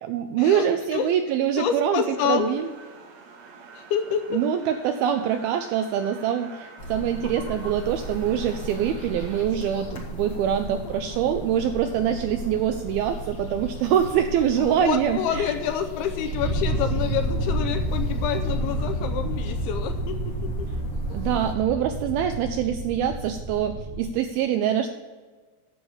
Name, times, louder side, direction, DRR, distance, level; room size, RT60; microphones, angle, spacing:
voice 1, 0.0-2.7 4.3-15.5 21.1-24.9, right 9 dB, 85° right, 7 dB, 2.2 m, -24 dB
voice 2, 1.6-2.5 3.7-4.4 14.6-20.5, left 8 dB, 85° left, 7 dB, 2.4 m, -28 dB
sound 1, 2.1-9.5, right 5 dB, 65° right, 1.7 m, -46 dB
sound 2, 6.8-21.5, equal, 60° left, 1.3 m, -36 dB
sound 3, 16.3-24.1, right 1 dB, 45° right, 1.4 m, -29 dB
10.5 x 7.2 x 7.1 m, 1.4 s
omnidirectional pair, 4.9 m